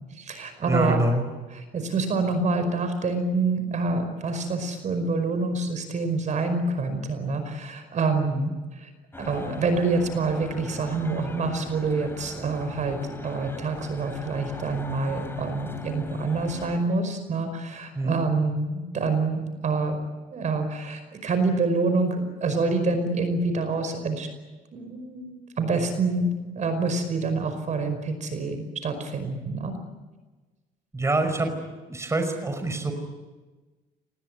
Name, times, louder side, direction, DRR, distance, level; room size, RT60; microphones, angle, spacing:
voice 1, 0.1-1.0 1.5-8.3 8.8-8.9 9.2-20.0 20.3-24.3 24.7-29.7, right 3 dB, 45° right, 8 dB, 5.2 m, -27 dB
voice 2, 0.7-1.3 8.3-8.5 17.9-18.2 30.9-31.5 31.9-32.9, right 2 dB, 15° right, 6 dB, 5.5 m, -25 dB
sound 1, 9.1-16.8, left 2 dB, 15° left, 3.5 m, -40 dB
27.0 x 20.5 x 9.6 m, 1.2 s
cardioid pair, 110°, 17 cm